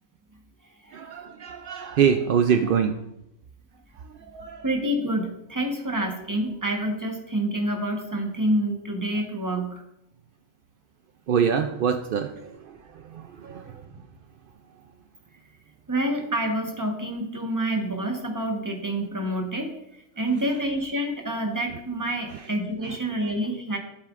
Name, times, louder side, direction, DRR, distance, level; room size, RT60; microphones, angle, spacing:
voice 1, 0.9-3.0 4.3-4.7 11.3-13.8 22.3-22.5 22.8-23.0, right 7 dB, 70° right, 7 dB, 0.5 m, -25 dB
voice 2, 4.6-9.8 15.9-19.7 20.2-23.8, right 1 dB, 15° right, 3 dB, 1.0 m, -27 dB
12.5 x 7.5 x 2.4 m, 0.82 s
omnidirectional pair, 1.4 m